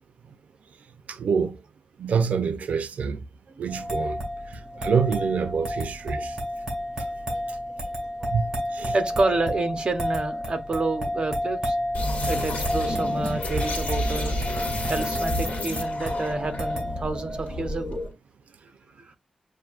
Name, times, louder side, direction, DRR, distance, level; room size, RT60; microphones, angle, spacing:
voice 1, 1.1-1.6 2.0-3.3 3.6-6.4 7.5-7.6 8.3-8.9, right 6 dB, 90° right, 0.4 m, -27 dB
sound 1, 3.7-17.0, equal, 20° right, 1.6 m, -31 dB
voice 2, 8.9-11.8 12.3-14.4 14.9-18.0 19.0-19.2, right 3 dB, 40° right, 0.7 m, -29 dB
sound 2, 11.9-18.1, left 1 dB, 75° left, 1.5 m, -30 dB
7.4 x 2.5 x 2.3 m
wide cardioid pair, 160°, 2 cm